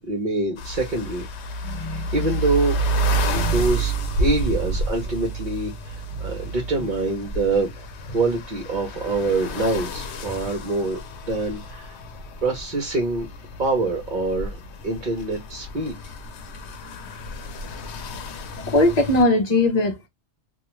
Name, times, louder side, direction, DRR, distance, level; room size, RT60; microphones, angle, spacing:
voice 1, 0.1-1.3 1.7-2.8 3.3-3.9 4.2-11.0 11.3-12.0 12.4-13.3 13.6-15.9, right 2 dB, 50° right, 0.8 m, -25 dB
sound 1, 0.6-19.2, right 2 dB, 85° left, 0.9 m, -30 dB
voice 2, 1.6-2.3 3.2-3.6 18.7-20.1, left 2 dB, 45° left, 0.7 m, -21 dB
2.4 x 2.2 x 3.0 m
omnidirectional pair, 1.1 m